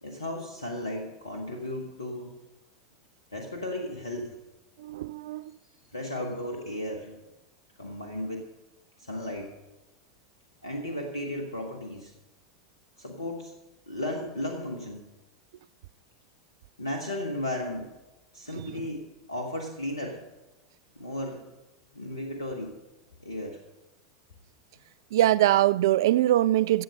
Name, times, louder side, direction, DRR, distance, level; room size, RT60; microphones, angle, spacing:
voice 1, 0.0-2.3 3.3-4.3 5.9-7.2 7.8-8.5 9.0-9.5 10.6-12.1 13.0-13.5 13.9-15.1 16.8-17.9 18.3-20.2 20.9-21.5 21.9-22.7 23.2-23.6, left 1 dB, 85° left, 1.3 m, -35 dB
voice 2, 4.8-5.5 25.1-26.8, right 13 dB, 65° right, 0.3 m, -22 dB
15.0 x 7.9 x 5.6 m
figure-of-eight pair, 85°, 2 cm